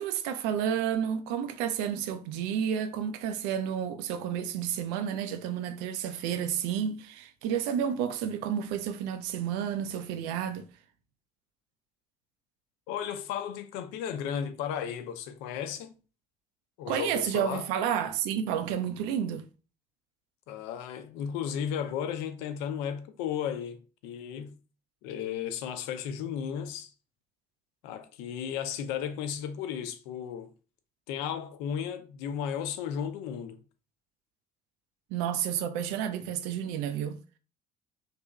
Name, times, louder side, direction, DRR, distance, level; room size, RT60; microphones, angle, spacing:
voice 1, 0.0-10.7 16.9-19.5 35.1-37.2, right 9 dB, 60° right, 0.4 m, -31 dB
voice 2, 12.9-16.0 16.8-17.7 20.5-24.5 25.0-26.9 27.8-30.5 31.1-33.6, left 8 dB, 55° left, 0.4 m, -34 dB
3.2 x 2.7 x 2.3 m
figure-of-eight pair, 50°, 20 cm